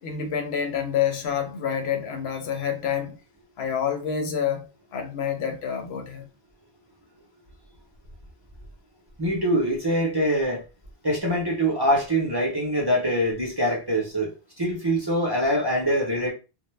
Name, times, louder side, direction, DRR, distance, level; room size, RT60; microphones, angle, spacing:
voice 1, 0.0-3.2 3.6-4.7 4.9-6.3, left 8 dB, 85° left, 0.9 m, -28 dB
voice 2, 9.2-10.6 11.0-14.3 14.6-16.3, equal, 30° right, 0.5 m, -24 dB
2.1 x 2.0 x 3.0 m
omnidirectional pair, 1.0 m